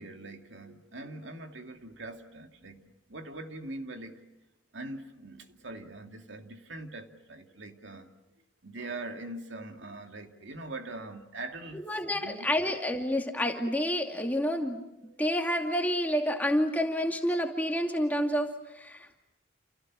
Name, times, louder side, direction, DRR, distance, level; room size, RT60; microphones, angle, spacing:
voice 1, 0.0-2.8 3.1-4.3 4.7-8.1 8.6-12.5 15.0-15.2, right 2 dB, 75° right, 2.5 m, -42 dB
voice 2, 11.7-14.8 15.2-19.2, equal, 10° left, 2.4 m, -29 dB
30.0 x 29.0 x 6.3 m
head